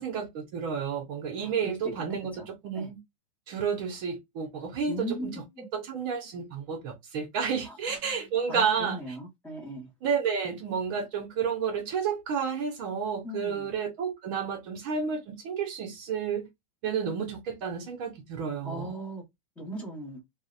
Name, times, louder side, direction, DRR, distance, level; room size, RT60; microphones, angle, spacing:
voice 1, 0.0-3.0 3.5-9.2 10.0-16.5 16.8-19.0, right 6 dB, 40° right, 0.5 m, -31 dB
voice 2, 1.4-1.7 2.4-2.5 2.7-2.9 4.9-5.7 7.7-7.8 8.0-8.1 8.5-9.9 13.2-13.7 18.6-19.2 19.6-20.2, right 1 dB, 10° left, 0.9 m, -38 dB
2.7 x 2.0 x 2.3 m
supercardioid pair, 165°, 17 cm